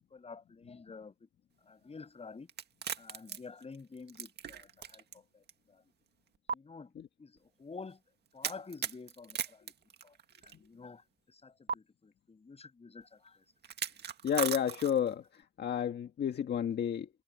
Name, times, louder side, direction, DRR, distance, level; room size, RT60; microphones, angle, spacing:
voice 1, 0.1-1.3 1.7-2.5 3.0-5.8 6.5-6.9 7.2-8.0 8.3-9.7 10.0-10.1 10.4-13.4, left 4 dB, 30° left, 7.3 m, -50 dB
sound 1, 2.5-5.2 5.5-5.6 6.5-6.6 8.4-10.5 11.7-11.8 13.6-15.1, right 7 dB, 55° right, 1.9 m, -38 dB
voice 2, 14.2-17.1, left 9 dB, 60° left, 1.7 m, -31 dB
cardioid pair, 90°, 20 cm